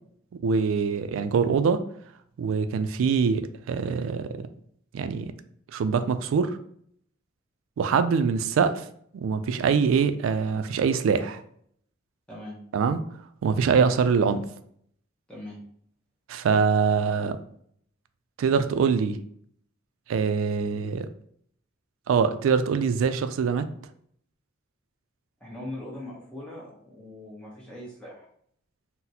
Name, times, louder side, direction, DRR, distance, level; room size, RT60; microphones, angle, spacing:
voice 1, 0.4-1.8 2.4-4.5 4.9-5.3 5.7-6.6 7.8-8.8 9.1-11.4 12.7-13.0 13.4-14.4 16.3-17.4 18.4-19.2 20.1-21.1 22.1-23.6, right 6 dB, 80° right, 11 dB, 0.3 m, -24 dB
voice 2, 12.3-12.6 15.3-15.6 25.4-28.3, left 1 dB, 5° left, -6 dB, 0.8 m, -40 dB
4.0 x 2.0 x 2.7 m, 0.64 s
head